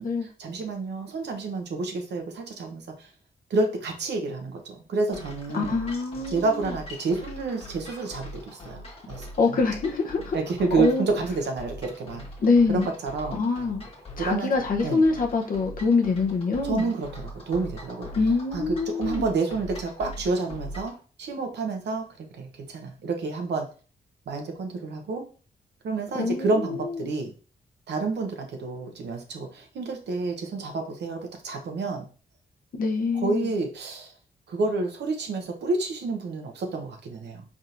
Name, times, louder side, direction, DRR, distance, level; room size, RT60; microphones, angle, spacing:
voice 1, 0.4-3.1 3.5-5.8 6.3-9.6 10.3-12.2 12.7-13.4 14.2-14.5 14.8-15.0 16.6-18.1 18.5-23.7 24.3-25.3 25.8-27.3 27.9-32.1 33.2-34.1 34.5-37.4, right 3 dB, 85° right, 0.8 m, -29 dB
sound 1, 5.1-21.0, left 1 dB, 35° left, 1.2 m, -42 dB
voice 2, 5.5-6.7 9.4-10.4 10.8-11.1 12.4-12.9 13.3-13.8 14.2-16.9 18.1-19.2 26.1-26.6 32.7-33.5, left 4 dB, 55° left, 0.8 m, -24 dB
4.3 x 3.5 x 2.5 m
wide cardioid pair, 125°, 17 cm